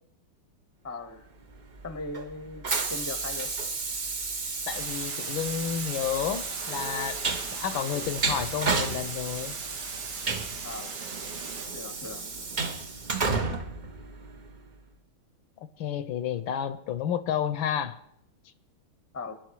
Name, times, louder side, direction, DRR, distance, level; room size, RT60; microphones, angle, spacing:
voice 1, 0.8-1.3 1.8-3.5 10.6-11.0 11.7-12.2 19.1-19.3, left 3 dB, 15° left, 10 dB, 0.6 m, -38 dB
Train, 1.5-14.7, right 4 dB, 55° right, 0.5 m, -32 dB
voice 2, 4.7-7.2 7.5-9.6 15.8-18.0, left 9 dB, 70° left, 13 dB, 1.4 m, -31 dB
sound 1, 4.7-11.7, right 5 dB, 75° right, 2.3 m, -42 dB
23.5 x 10.5 x 4.8 m, 0.78 s
omnidirectional pair, 2.4 m